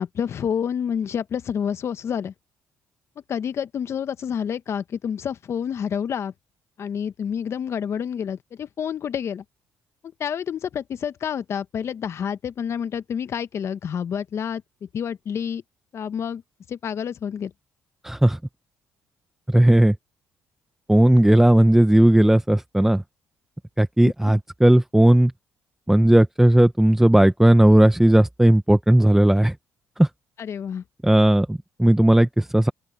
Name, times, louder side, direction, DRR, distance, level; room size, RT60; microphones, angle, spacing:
voice 1, 0.0-2.3 3.3-6.3 6.8-9.4 10.2-14.6 14.9-15.6 15.9-16.4 16.7-17.5 24.0-24.1 30.4-30.8, left 8 dB, 55° left, 1.0 m, -28 dB
voice 2, 18.0-18.4 19.5-19.9 20.9-23.0 23.8-25.3 25.9-29.5 30.0-30.1 31.0-32.7, right 1 dB, 5° right, 1.1 m, -16 dB
open air
cardioid pair, 80°, 6 cm